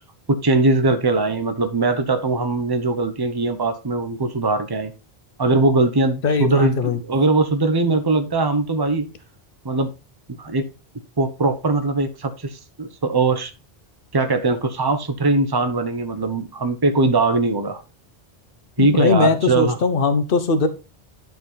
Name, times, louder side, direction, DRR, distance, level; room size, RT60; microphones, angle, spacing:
voice 1, 0.3-4.9 5.4-9.1 9.6-9.9 10.4-10.6 11.2-13.5 14.1-17.8 18.8-19.8, right 3 dB, 25° right, 1.0 m, -20 dB
voice 2, 6.2-7.0 18.8-20.7, left 4 dB, 60° left, 1.2 m, -19 dB
12.0 x 4.9 x 4.0 m
omnidirectional pair, 1.0 m